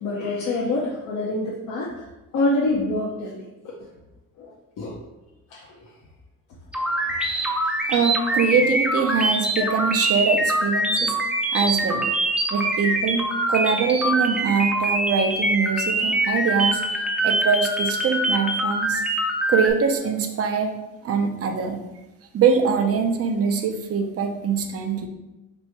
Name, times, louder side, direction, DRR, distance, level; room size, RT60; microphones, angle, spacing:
voice 1, 0.0-1.9 2.3-3.3 3.6-3.7 4.4-4.5 4.8-4.9 5.5-5.6 7.6-7.7 9.6-9.7, left 2 dB, 70° left, -4 dB, 0.7 m, -25 dB
sound 1, 6.7-19.7, right 1 dB, 5° right, 0.5 m, -24 dB
voice 2, 7.9-11.2 11.5-12.1 12.5-16.8 17.2-19.0 19.5-20.7 21.0-21.8 22.3-25.1, right 6 dB, 50° right, 4 dB, 0.6 m, -23 dB
3.1 x 2.6 x 4.4 m, 1.0 s
cardioid pair, 90°, 30 cm